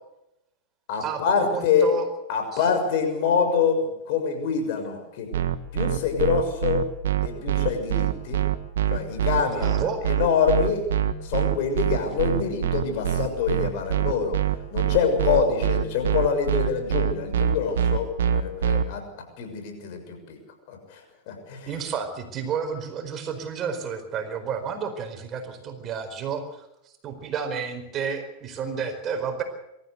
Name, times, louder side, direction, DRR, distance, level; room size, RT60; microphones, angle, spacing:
voice 1, 0.9-1.9 2.3-5.3 5.7-6.9 7.2-8.4 8.9-10.9 11.2-14.4 14.7-20.4 20.7-21.7, left 6 dB, 60° left, 5 dB, 6.5 m, -25 dB
voice 2, 1.5-2.1 2.5-2.6 9.5-10.0 21.7-26.7 27.0-29.4, right 5 dB, 35° right, 7 dB, 4.7 m, -31 dB
sound 1, 5.3-18.8, right 10 dB, 75° right, 1.5 m, -24 dB
24.0 x 14.0 x 8.3 m, 0.87 s
hypercardioid pair, 100°, 0 cm